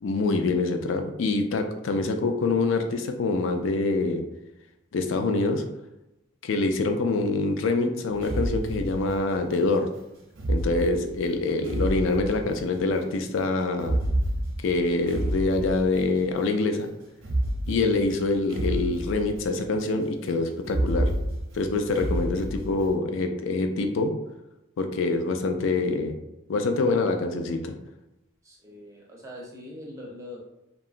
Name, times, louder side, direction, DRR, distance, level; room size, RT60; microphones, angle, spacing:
voice 1, 0.0-4.2 4.9-5.6 6.4-9.9 10.5-14.0 14.6-16.9 17.7-21.1 21.5-24.1 24.8-26.2 26.5-27.7, left 3 dB, 70° left, 6 dB, 0.3 m, -25 dB
sound 1, 8.1-9.5 10.3-12.8 13.7-16.3 17.2-19.6 20.6-22.9, right 1 dB, 75° right, 0.6 m, -29 dB
voice 2, 28.4-30.4, left 1 dB, 15° right, -3 dB, 0.5 m, -42 dB
2.8 x 2.3 x 2.4 m, 0.91 s
head